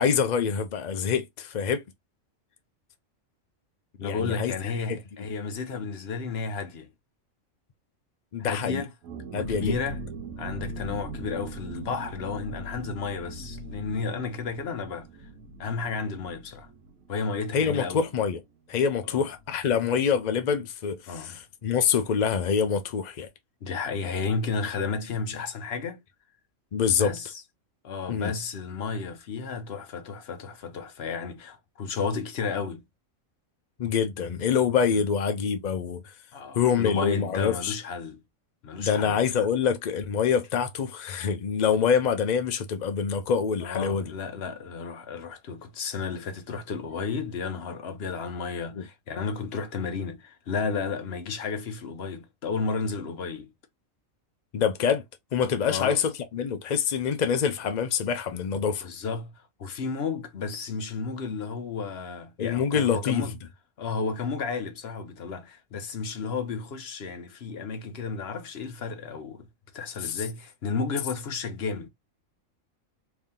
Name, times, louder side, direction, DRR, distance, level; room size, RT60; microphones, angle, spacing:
voice 1, 0.0-1.8 4.0-5.0 8.3-8.8 9.3-9.8 17.5-18.4 18.7-23.3 26.7-27.1 28.1-28.3 33.8-36.1 36.5-37.8 38.8-44.1 48.8-48.9 54.5-55.0 55.3-58.9 62.4-63.2 70.0-70.2, left 7 dB, 75° left, 0.4 m, -26 dB
voice 2, 4.0-6.9 8.4-8.9 9.3-10.0 10.4-15.1 15.6-16.7 17.1-18.1 19.0-19.3 21.1-21.4 23.6-26.0 26.9-27.4 27.8-32.8 34.9-35.0 36.3-38.2 38.6-39.2 43.6-53.5 55.7-56.0 58.8-63.3 63.8-69.5 69.7-71.9, left 5 dB, 55° left, 0.9 m, -32 dB
sound 1, 9.0-18.5 18.7-18.8 19.1-19.4, right 2 dB, 80° right, 1.1 m, -40 dB
3.4 x 2.7 x 3.6 m
omnidirectional pair, 1.4 m